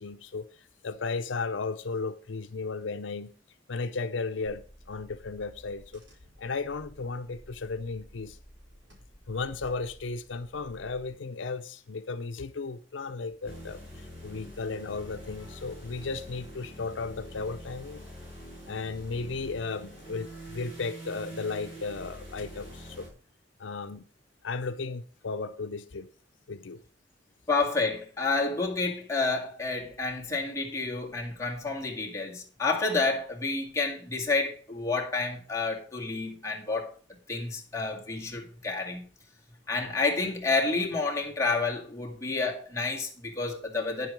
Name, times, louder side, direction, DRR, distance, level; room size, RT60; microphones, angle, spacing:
voice 1, 0.0-3.3 3.7-6.0 6.4-8.4 9.3-18.1 18.7-23.1 23.6-24.0 24.4-26.1 26.5-26.8, left 4 dB, 85° left, 0.6 m, -35 dB
Car / Engine, 4.5-11.1, equal, 75° right, 4.7 m, -53 dB
sound 1, 13.4-23.1, right 1 dB, 35° right, 5.9 m, -45 dB
voice 2, 27.5-36.9 37.3-39.0 39.7-44.1, left 3 dB, 15° left, 2.2 m, -29 dB
9.9 x 7.7 x 5.1 m
head